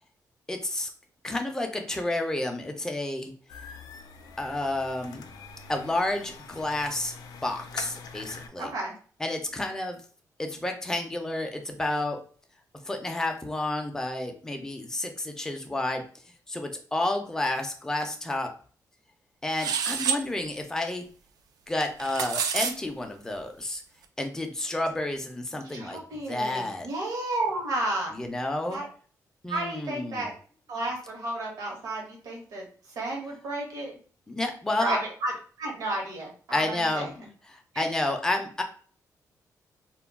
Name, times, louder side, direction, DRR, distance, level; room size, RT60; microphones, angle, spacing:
voice 1, 0.5-0.9 1.2-3.3 4.4-5.3 5.7-7.1 7.4-8.7 9.2-10.0 10.4-12.2 12.8-16.0 16.5-18.5 19.4-21.1 21.7-23.8 24.2-26.0 26.3-26.9 28.1-28.8 29.4-30.3 34.3-35.0 36.5-38.6, left 2 dB, 10° left, 3 dB, 0.4 m, -30 dB
sound 1, 3.5-8.5, left 5 dB, 85° left, 0.4 m, -44 dB
voice 2, 8.6-8.9 25.7-28.1 28.7-28.9 29.5-30.3 30.7-32.6 33.0-33.9 34.8-35.3 35.6-37.1 37.7-37.8, right 2 dB, 65° right, -1 dB, 0.9 m, -32 dB
sound 2, 19.6-20.2 21.8-22.7, right 7 dB, 85° right, 0.3 m, -28 dB
2.2 x 2.2 x 3.4 m, 0.43 s
wide cardioid pair, 165°, 6 cm